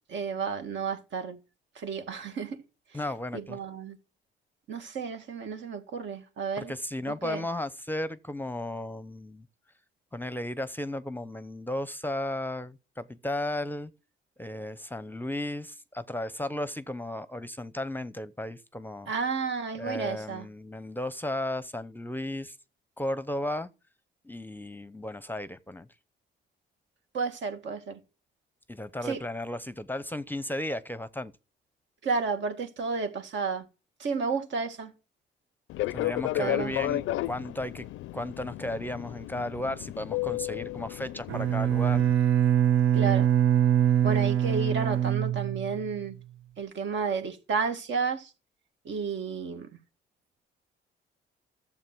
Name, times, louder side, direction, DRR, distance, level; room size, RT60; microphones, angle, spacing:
voice 1, 0.1-1.4 1.8-2.6 3.3-4.0 4.7-6.7 7.1-7.5 19.1-20.5 27.1-28.0 29.0-29.2 32.0-33.7 34.0-34.9 36.4-36.7 42.9-43.3 44.0-46.2 46.6-48.3 48.9-49.7, right 5 dB, 65° right, 2.0 m, -32 dB
voice 2, 2.9-3.6 6.6-9.4 10.1-13.9 14.4-19.1 19.8-22.6 23.0-23.7 24.2-25.9 28.7-31.3 35.9-37.9 38.1-42.0, left 1 dB, 10° left, 0.7 m, -34 dB
Fixed-wing aircraft airplane, 35.7-42.1, left 16 dB, 85° left, 0.5 m, -33 dB
Bowed string instrument, 41.3-46.0, right 10 dB, 90° right, 1.1 m, -24 dB
12.5 x 7.4 x 6.1 m
cardioid pair, 90°, 20 cm